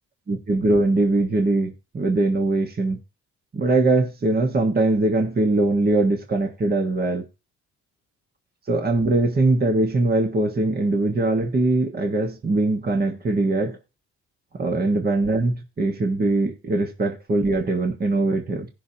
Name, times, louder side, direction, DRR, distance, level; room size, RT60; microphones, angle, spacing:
voice 1, 0.3-3.0 3.5-7.2 8.7-13.8 14.5-18.7, right 2 dB, 30° right, 1.4 m, -21 dB
16.5 x 6.1 x 2.8 m
cardioid pair, 90°, 30 cm